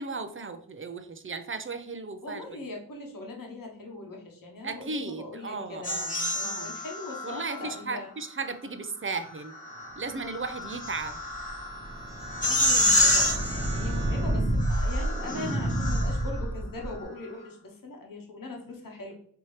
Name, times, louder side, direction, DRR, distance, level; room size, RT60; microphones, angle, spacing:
voice 1, 0.0-2.6 4.6-6.1 6.4-6.8 7.2-9.6 10.0-11.2, right 4 dB, 35° right, 9 dB, 0.5 m, -36 dB
voice 2, 2.2-8.1 12.4-19.1, left 2 dB, 60° left, 0 dB, 1.1 m, -40 dB
sound 1, 5.8-7.8 9.2-16.4, left 1 dB, 20° left, 1.2 m, -29 dB
sound 2, 10.7-17.0, right 1 dB, 10° right, 0.8 m, -30 dB
4.4 x 2.9 x 3.1 m, 0.63 s
cardioid pair, 55°, 39 cm